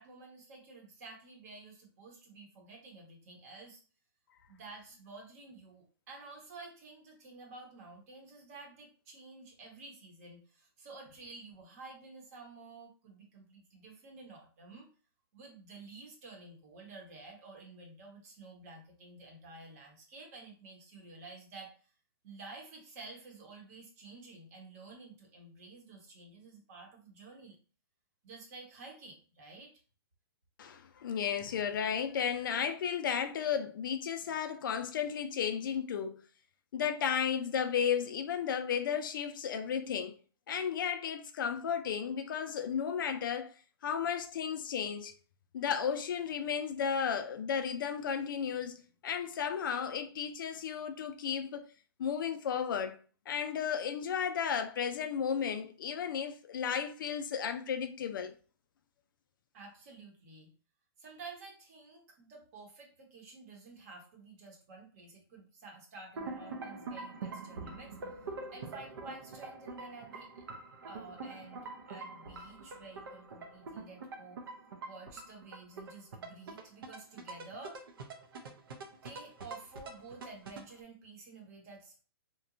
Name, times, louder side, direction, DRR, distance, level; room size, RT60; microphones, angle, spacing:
voice 1, 0.0-3.8 4.5-14.9 15.3-21.9 22.2-27.6 28.2-29.7 59.5-60.5 61.0-70.5 70.9-74.4 74.9-77.8 79.0-82.0, right 3 dB, 40° right, 0.9 m, -51 dB
voice 2, 30.6-36.2 36.7-40.2 40.5-43.5 43.8-45.1 45.5-51.7 52.0-53.0 53.3-58.3, left 7 dB, 55° left, 0.4 m, -34 dB
sound 1, 66.2-80.8, right 3 dB, 65° right, 0.5 m, -45 dB
2.9 x 2.2 x 2.5 m
hypercardioid pair, 155°, 13 cm